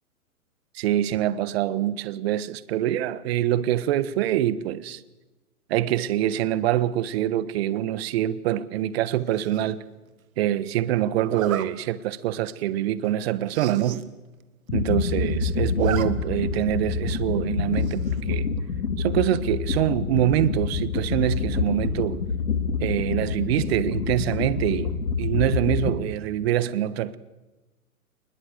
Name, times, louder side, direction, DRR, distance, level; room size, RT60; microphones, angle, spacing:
voice 1, 0.7-5.0 5.7-9.8 10.4-14.0 14.7-18.5 19.0-22.2 22.8-27.2, right 12 dB, 40° right, 1.4 m, -25 dB
Zipper (clothing), 9.3-9.7 11.3-11.7 12.2-12.4 12.7-12.8 13.1-13.2 13.4-14.0 14.4-14.5 14.7-15.2 15.5-16.1 16.4-16.5 17.8-18.2, right 9 dB, 65° right, 2.0 m, -34 dB
sound 1, 14.7-25.9, left 5 dB, 80° left, 3.6 m, -27 dB
26.5 x 21.5 x 7.9 m
hypercardioid pair, 130°, 45 cm